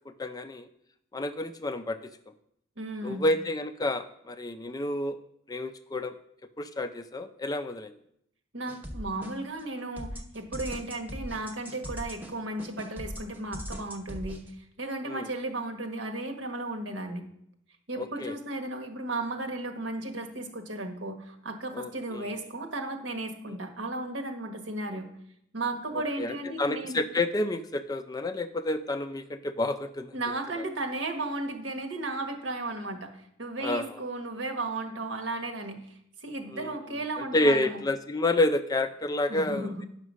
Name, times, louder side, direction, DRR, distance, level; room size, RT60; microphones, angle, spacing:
voice 1, 0.1-0.7 1.1-2.0 3.0-5.2 5.5-6.1 6.6-7.9 15.1-15.3 18.0-18.4 21.7-22.3 26.2-30.1 33.6-34.0 36.5-39.7, left 2 dB, 20° left, 9 dB, 0.4 m, -29 dB
voice 2, 2.8-3.2 8.5-14.4 14.8-17.2 17.9-25.1 25.5-27.0 30.1-33.1 33.4-37.8 39.3-39.8, right 2 dB, 65° right, 4 dB, 1.4 m, -35 dB
sound 1, 8.7-9.6 10.0-14.5, equal, 10° right, 0.8 m, -40 dB
9.6 x 5.8 x 6.2 m, 0.73 s
head